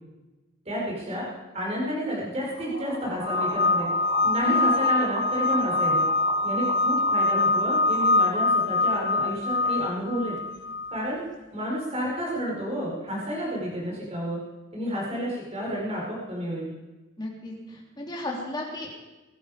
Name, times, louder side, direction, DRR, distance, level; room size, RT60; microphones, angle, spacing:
voice 1, 0.6-1.3 1.5-3.9 4.2-6.1 6.4-10.4 10.9-11.2 11.5-14.4 14.7-16.7, equal, 30° right, -4 dB, 4.9 m, -30 dB
sound 1, 2.4-8.5, right 2 dB, 75° right, 2.7 m, -38 dB
sound 2, 3.2-11.0, left 2 dB, 55° left, 0.7 m, -24 dB
voice 2, 17.2-19.0, left 1 dB, 20° left, -2 dB, 3.4 m, -33 dB
23.0 x 11.5 x 5.1 m, 1.1 s
head